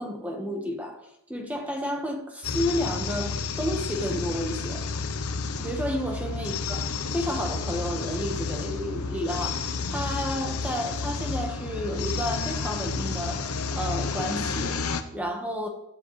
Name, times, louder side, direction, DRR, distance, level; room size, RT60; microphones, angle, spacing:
voice 1, 0.0-4.9 5.6-6.9 7.1-15.7, equal, 5° right, 2 dB, 1.6 m, -31 dB
sound 1, 2.4-15.0, left 4 dB, 90° left, 1.1 m, -31 dB
15.5 x 12.5 x 3.4 m, 0.79 s
head